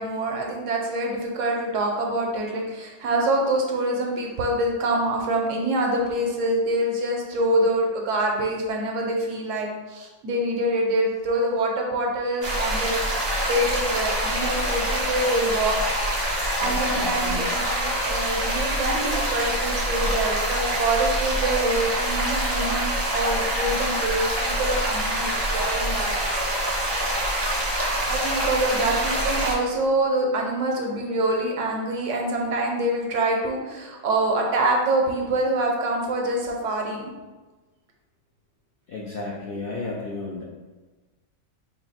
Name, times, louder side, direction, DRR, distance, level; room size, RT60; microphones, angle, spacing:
voice 1, 0.0-15.9 16.6-26.1 28.1-37.0, right 1 dB, 70° right, 0 dB, 1.0 m, -25 dB
sound 1, 12.4-29.5, right 1 dB, 30° right, 0.5 m, -25 dB
voice 2, 16.6-17.5 38.9-40.4, left 3 dB, 70° left, -3 dB, 0.5 m, -33 dB
3.9 x 2.3 x 4.1 m, 1.2 s
omnidirectional pair, 1.4 m